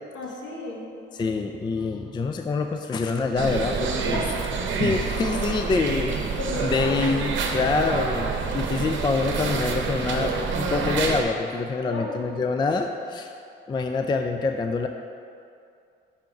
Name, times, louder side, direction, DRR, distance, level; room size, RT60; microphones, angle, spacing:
voice 1, 0.1-0.8 4.1-4.2 6.3-7.0 11.8-12.3, left 2 dB, 65° left, -2 dB, 1.3 m, -32 dB
voice 2, 1.1-4.2 4.8-6.2 6.6-13.3 13.7-14.9, left 4 dB, 25° left, 5 dB, 0.3 m, -26 dB
sound 1, 3.4-11.2, right 5 dB, 70° right, 0.8 m, -27 dB
5.7 x 3.8 x 5.9 m, 2.4 s
cardioid pair, 90°, 20 cm